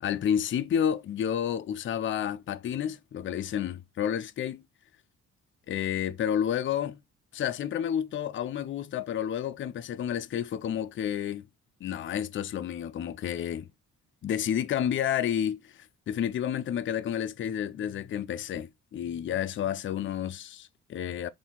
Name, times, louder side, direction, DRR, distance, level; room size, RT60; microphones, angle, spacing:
voice 1, 0.0-4.6 5.7-7.0 7.3-11.4 11.8-13.7 14.2-21.3, left 9 dB, 40° left, 0.4 m, -30 dB
4.3 x 2.7 x 3.6 m
cardioid pair, 90°, 30 cm